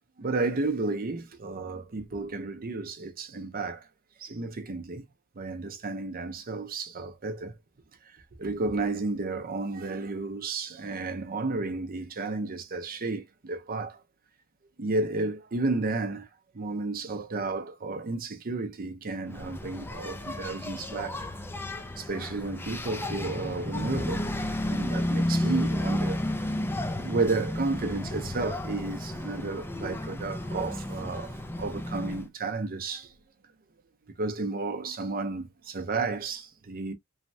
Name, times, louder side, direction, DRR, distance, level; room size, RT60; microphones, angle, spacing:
voice 1, 0.2-3.9 4.2-5.0 5.4-7.6 8.1-14.0 14.8-16.3 16.5-21.2 22.0-24.3 24.7-26.6 27.0-33.1 34.2-36.9, right 3 dB, 45° right, 0.7 m, -32 dB
Engine, 19.3-32.3, left 1 dB, 10° left, 0.4 m, -32 dB
3.2 x 2.2 x 2.6 m
head